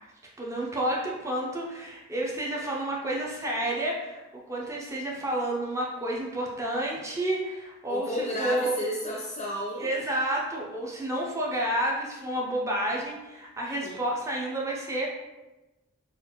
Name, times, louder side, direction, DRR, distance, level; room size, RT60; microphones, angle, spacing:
voice 1, 0.4-8.7 9.8-15.1, right 1 dB, 15° right, -3 dB, 0.6 m, -30 dB
voice 2, 7.9-9.9 13.7-14.0, equal, 30° left, -4 dB, 0.6 m, -32 dB
3.9 x 2.4 x 3.0 m, 1.1 s
head